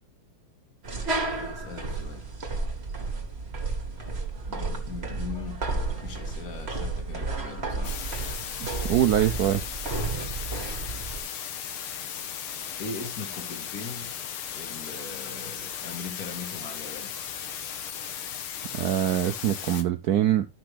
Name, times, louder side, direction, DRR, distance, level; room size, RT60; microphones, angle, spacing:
sound 1, 0.8-11.2, right 3 dB, 30° right, 2.0 m, -32 dB
voice 1, 1.3-2.3 4.5-5.7 6.0-8.0 12.8-14.1 14.5-17.2, left 4 dB, 45° left, 2.6 m, -40 dB
sound 2, 7.8-19.8, left 8 dB, 80° left, 2.0 m, -36 dB
voice 2, 8.6-9.6 18.7-20.5, right 11 dB, 80° right, 0.8 m, -24 dB
12.5 x 6.0 x 3.3 m
omnidirectional pair, 2.4 m